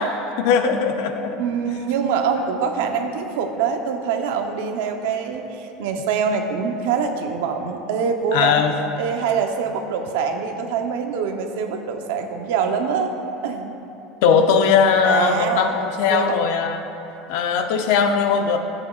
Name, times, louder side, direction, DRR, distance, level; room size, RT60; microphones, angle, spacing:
voice 1, 0.0-1.4 8.3-8.8 14.2-16.9 17.3-18.6, left 6 dB, 65° left, 6 dB, 0.6 m, -19 dB
voice 2, 1.4-8.6 9.0-13.1 13.4-13.7 15.0-15.7 16.1-16.4, right 6 dB, 80° right, 5 dB, 0.8 m, -24 dB
14.5 x 8.3 x 2.4 m, 2.9 s
cardioid pair, 170°, 0 cm